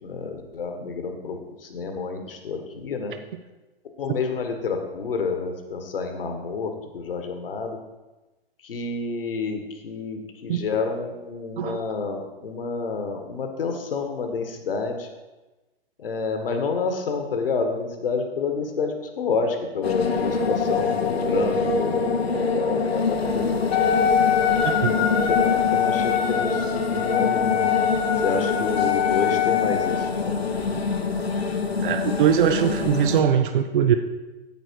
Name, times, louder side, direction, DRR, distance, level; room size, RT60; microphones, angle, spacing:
voice 1, 0.0-3.1 4.0-7.8 8.6-15.1 16.0-23.9 24.8-27.6 28.2-30.4, left 4 dB, 65° left, 5 dB, 1.6 m, -29 dB
sound 1, 19.8-33.2, left 4 dB, 80° left, 1.1 m, -25 dB
Wind instrument woodwind instrument, 23.7-30.2, left 10 dB, 35° left, 1.0 m, -24 dB
voice 2, 24.6-24.9 31.8-34.0, right 8 dB, 55° right, 8 dB, 0.7 m, -21 dB
9.1 x 8.8 x 4.7 m, 1.1 s
figure-of-eight pair, 115°, 31 cm